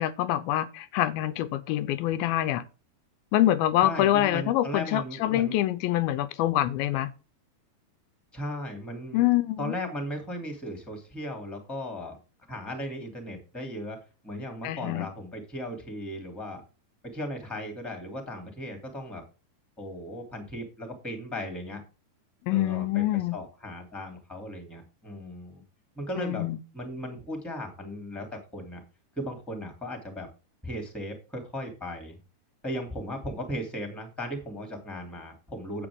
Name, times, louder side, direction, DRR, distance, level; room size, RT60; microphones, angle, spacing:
voice 1, 0.0-2.6 3.3-7.1 9.1-9.7 14.6-15.1 22.5-23.4 26.2-26.6, left 13 dB, 85° left, 2.5 m, -25 dB
voice 2, 3.8-5.6 8.3-9.3 9.6-12.2 12.5-14.0 14.2-16.6 17.0-19.2 19.8-21.8 22.5-25.6 26.0-26.4 26.7-28.8 29.2-30.3 30.6-32.2 32.6-35.9, equal, ahead, 2.1 m, -36 dB
8.8 x 8.5 x 3.6 m
omnidirectional pair, 4.3 m